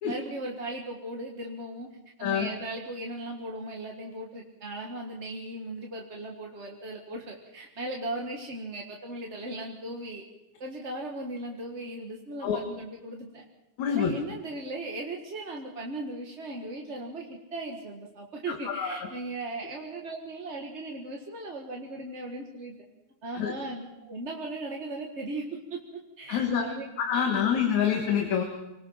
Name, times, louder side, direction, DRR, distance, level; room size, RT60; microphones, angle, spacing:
voice 1, 0.0-1.9 2.2-10.2 10.6-13.4 13.9-22.8 23.2-26.9 27.2-27.5, right 2 dB, 30° right, 0 dB, 1.4 m, -37 dB
voice 2, 13.8-14.1 18.5-19.1 23.3-23.5 26.3-26.7 27.0-28.4, left 8 dB, 70° left, 3 dB, 3.1 m, -26 dB
26.0 x 19.0 x 5.7 m, 0.98 s
omnidirectional pair, 3.4 m